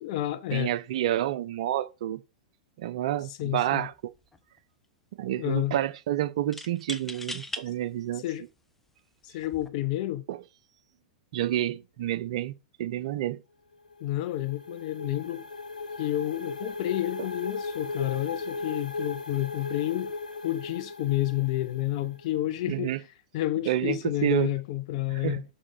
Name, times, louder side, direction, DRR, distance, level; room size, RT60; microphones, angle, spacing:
voice 1, 0.0-0.7 3.2-3.9 5.4-5.7 8.1-8.4 9.2-10.2 14.0-15.4 16.0-20.1 20.4-23.1 23.3-25.4, left 15 dB, 50° left, 0.5 m, -30 dB
voice 2, 0.5-2.2 2.8-3.9 5.2-8.2 10.3-10.4 11.3-12.5 12.8-13.4 17.2-17.3 22.7-23.0 23.7-24.5 25.2-25.4, right 12 dB, 60° right, 0.5 m, -29 dB
sound 1, 3.4-3.6 3.9-4.6 6.5-7.7 8.4-8.5 9.4-9.7, left 2 dB, 5° left, 0.9 m, -39 dB
sound 2, 13.7-22.4, left 3 dB, 85° left, 1.0 m, -37 dB
6.5 x 4.8 x 5.6 m
hypercardioid pair, 105°, 4 cm